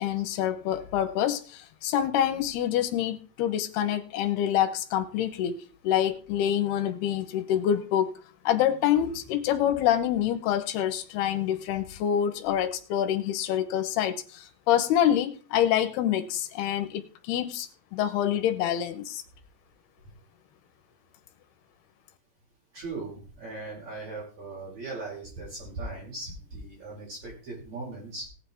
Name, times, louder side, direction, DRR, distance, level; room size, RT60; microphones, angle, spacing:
voice 1, 0.0-5.6 5.8-8.1 8.4-19.2, left 10 dB, 70° left, 10 dB, 2.9 m, -26 dB
voice 2, 22.7-28.3, right 3 dB, 40° right, -6 dB, 6.4 m, -38 dB
18.0 x 7.7 x 4.5 m, 0.38 s
omnidirectional pair, 5.1 m